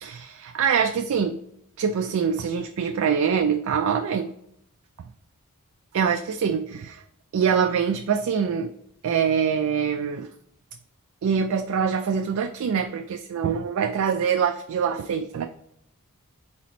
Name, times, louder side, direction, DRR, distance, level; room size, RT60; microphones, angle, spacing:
voice 1, 0.0-1.4 1.8-4.3 5.9-7.0 7.3-8.7 9.0-10.3 11.2-15.5, right 7 dB, 70° right, 5 dB, 0.4 m, -24 dB
4.2 x 4.1 x 2.9 m, 0.72 s
head